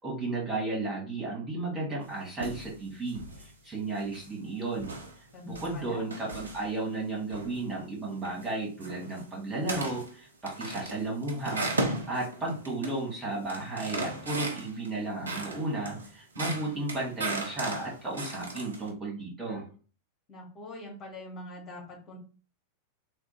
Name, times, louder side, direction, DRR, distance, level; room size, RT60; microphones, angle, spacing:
voice 1, 0.0-4.9 5.4-19.6, right 2 dB, 20° right, -4 dB, 2.1 m, -34 dB
sound 1, 2.0-2.7 3.1-3.5 4.0-4.4 4.8-6.9 7.3-7.6 8.1-8.5 8.8-9.2 9.6-10.1 10.5-13.0 13.3-14.9 15.3-18.9, right 2 dB, 75° right, 0.7 m, -36 dB
voice 2, 5.3-6.1 20.3-22.2, left 2 dB, 30° left, -3 dB, 2.0 m, -43 dB
3.5 x 2.4 x 4.0 m, 0.38 s
figure-of-eight pair, 90°, 0 cm